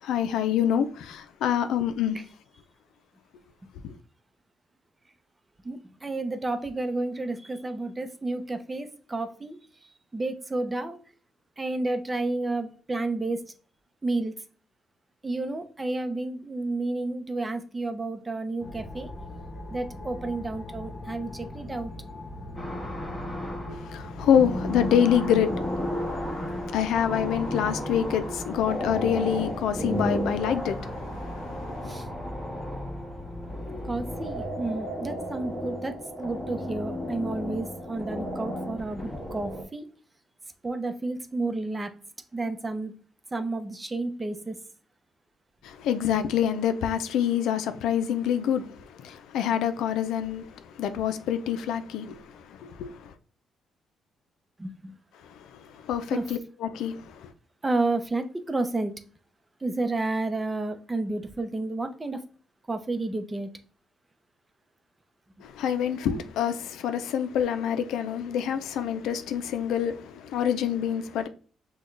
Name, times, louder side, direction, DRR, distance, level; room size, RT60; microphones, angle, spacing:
voice 1, 0.0-2.2 3.8-3.9 23.7-32.0 45.6-53.1 55.2-57.3 65.4-71.3, left 9 dB, 85° left, 0.4 m, -27 dB
voice 2, 5.6-9.6 10.1-11.0 11.6-13.4 14.0-14.3 15.2-19.1 19.7-21.9 31.9-32.1 33.8-39.9 40.6-41.9 42.3-42.9 43.3-44.6 54.6-55.0 56.1-56.2 57.6-58.9 59.6-62.2 62.7-63.5, right 2 dB, 20° right, 0.7 m, -31 dB
sound 1, 18.6-34.4, left 1 dB, 40° left, 1.1 m, -40 dB
sound 2, 22.6-23.9 24.2-39.6, equal, 20° left, 1.7 m, -34 dB
6.2 x 2.3 x 3.2 m
cardioid pair, 90°, 0 cm